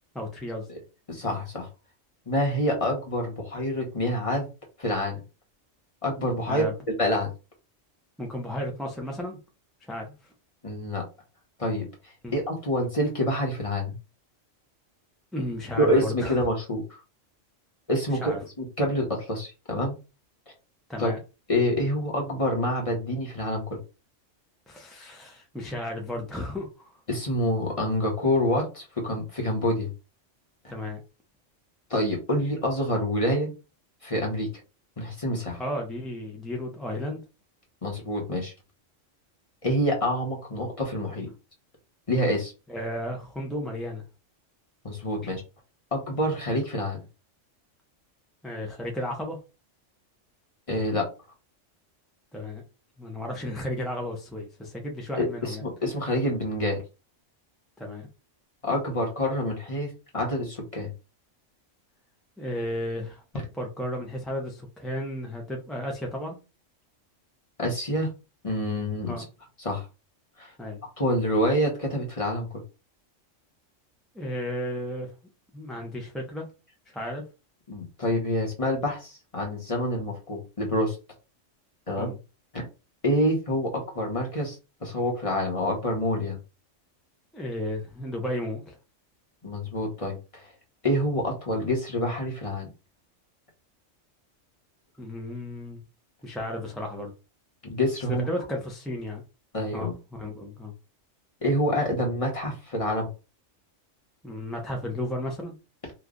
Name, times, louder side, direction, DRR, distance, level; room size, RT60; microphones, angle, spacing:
voice 1, 0.1-0.7 6.5-6.7 8.2-9.4 9.8-10.3 12.2-12.3 15.3-16.4 18.1-18.4 20.9-21.2 24.7-27.0 30.7-31.0 35.6-37.2 42.7-44.0 45.2-45.4 48.4-49.4 52.3-52.6 53.0-55.6 57.8-58.1 62.4-66.4 69.0-69.3 70.6-70.8 74.1-75.1 75.5-76.5 76.9-77.3 82.0-82.2 87.3-88.8 95.0-95.8 96.2-97.1 98.1-99.2 99.7-100.7 104.2-105.5, left 1 dB, ahead, 0.5 m, -34 dB
voice 2, 1.1-1.7 2.3-4.5 4.8-5.2 6.0-6.6 7.0-7.3 10.6-11.0 11.6-11.9 12.3-13.9 15.8-16.8 17.9-19.9 21.0-21.1 21.5-23.8 27.1-29.9 31.9-33.5 34.0-34.5 35.0-35.6 37.8-38.5 39.6-41.3 42.1-42.5 44.8-45.4 45.9-47.0 50.7-51.1 55.2-56.8 58.6-60.9 67.6-68.1 68.4-69.1 69.6-69.8 70.4-70.5 71.0-72.5 77.7-81.0 81.9-82.1 82.5-82.6 83.0-84.6 84.8-86.4 89.4-90.4 90.8-92.7 97.6-98.2 99.5-99.9 101.4-103.1, left 1 dB, 30° left, 1.1 m, -27 dB
3.0 x 2.4 x 3.7 m
omnidirectional pair, 1.3 m